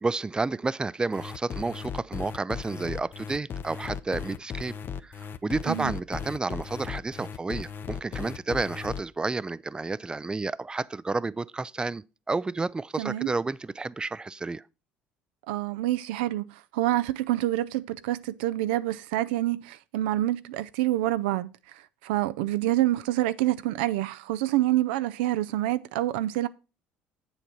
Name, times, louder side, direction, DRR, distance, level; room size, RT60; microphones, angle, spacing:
voice 1, 0.0-4.7 5.0-14.6, right 3 dB, 15° right, 0.4 m, -31 dB
sound 1, 1.1-9.0, left 7 dB, 40° left, 0.7 m, -36 dB
voice 2, 13.0-13.3 15.5-26.5, right 15 dB, 85° right, 0.4 m, -27 dB
7.9 x 7.1 x 4.4 m
supercardioid pair, 75°, 5 cm